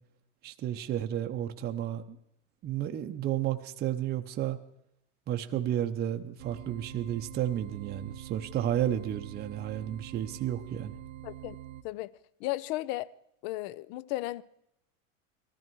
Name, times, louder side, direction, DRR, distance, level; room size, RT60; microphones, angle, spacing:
voice 1, 0.4-2.2 2.6-4.6 5.3-11.0, right 11 dB, 25° right, 0.7 m, -32 dB
sound 1, 6.4-11.8, right 12 dB, 80° right, 1.0 m, -45 dB
voice 2, 11.2-11.6 11.8-12.1 12.4-13.1 13.4-14.4, left 17 dB, 50° left, 0.6 m, -34 dB
19.0 x 14.0 x 4.6 m
supercardioid pair, 125°, 39 cm